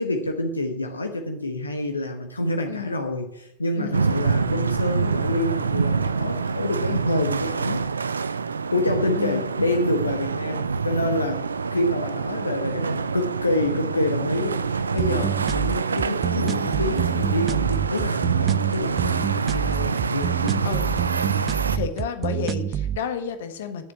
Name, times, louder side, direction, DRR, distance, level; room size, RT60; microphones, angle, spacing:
voice 1, 0.0-8.1 8.7-20.8, left 1 dB, 85° left, 4 dB, 1.2 m, -27 dB
voice 2, 3.8-4.3 9.1-9.4 20.6-21.0 21.7-23.9, left 7 dB, 65° left, 8 dB, 1.5 m, -31 dB
sound 1, 3.9-21.8, right 5 dB, 80° right, 0.5 m, -26 dB
sound 2, 15.0-23.0, right 10 dB, 30° right, 0.5 m, -27 dB
10.5 x 7.1 x 9.4 m, 0.83 s
figure-of-eight pair, 90°, 0 cm